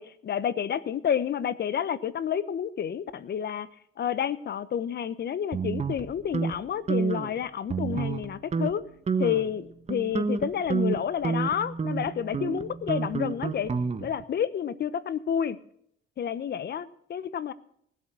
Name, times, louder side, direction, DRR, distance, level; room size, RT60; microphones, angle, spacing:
voice 1, 0.0-3.7 4.0-8.8 9.2-13.7 14.0-15.6 16.2-17.5, left 8 dB, 55° left, 16 dB, 1.1 m, -30 dB
sound 1, 5.5-6.5 6.9-7.3 7.7-8.2 8.5-8.7 9.1-9.5 9.9-14.2, right 5 dB, 35° right, 1.3 m, -29 dB
19.5 x 8.2 x 6.2 m, 0.67 s
cardioid pair, 90°, 20 cm